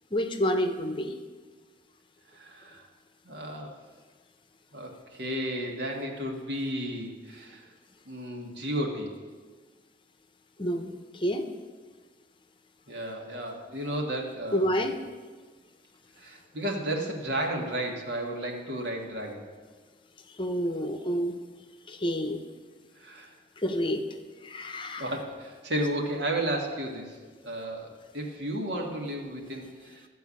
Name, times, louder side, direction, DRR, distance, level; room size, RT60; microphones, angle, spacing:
voice 1, 0.1-1.2 10.6-11.5 14.5-15.0 20.4-21.3 21.9-22.4 23.6-24.1 24.4-25.1, equal, 30° left, 7 dB, 0.7 m, -29 dB
voice 2, 2.3-2.9 3.2-3.8 4.7-7.7 8.1-9.2 12.9-14.8 16.2-19.5 23.0-23.3 25.0-27.2 27.4-30.0, right 1 dB, 75° right, 1 dB, 1.8 m, -33 dB
14.0 x 4.7 x 8.4 m, 1.4 s
head